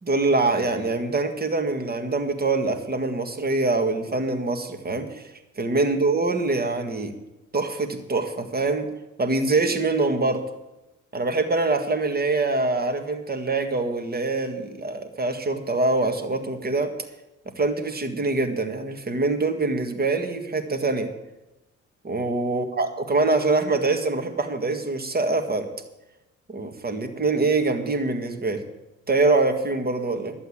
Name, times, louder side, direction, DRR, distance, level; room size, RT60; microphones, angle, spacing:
voice 1, 0.0-5.2 5.6-7.1 7.5-8.9 9.2-10.4 11.1-16.9 17.6-21.1 22.0-25.7 26.5-28.6 29.1-30.3, right 3 dB, 30° right, 6 dB, 1.8 m, -24 dB
12.0 x 8.0 x 8.6 m, 0.99 s
cardioid pair, 90°, 30 cm